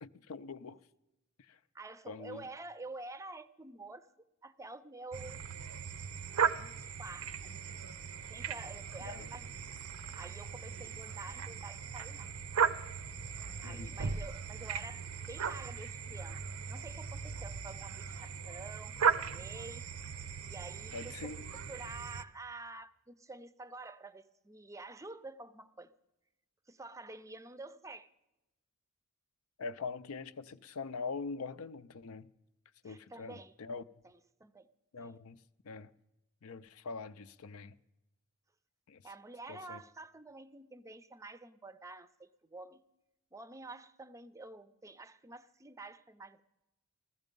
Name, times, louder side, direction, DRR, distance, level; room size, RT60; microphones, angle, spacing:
voice 1, 0.0-0.8 1.5-1.6 2.1-2.4 9.0-9.3 13.6-14.0 20.9-21.5 29.6-32.3 32.8-33.8 34.9-35.4 35.6-35.9 36.4-37.7 38.9-39.0 39.5-39.8, left 4 dB, 70° left, 0.5 m, -43 dB
voice 2, 1.7-4.1 4.4-5.4 6.5-7.8 8.3-9.6 10.1-12.3 13.6-16.4 16.7-19.9 20.5-21.3 21.7-25.9 26.7-28.1 32.8-33.5 34.0-34.7 35.0-35.1 39.0-42.8 43.3-46.4, right 3 dB, 15° right, 0.5 m, -49 dB
sound 1, 5.1-22.2, right 6 dB, 75° right, 0.7 m, -37 dB
15.0 x 15.0 x 5.3 m
head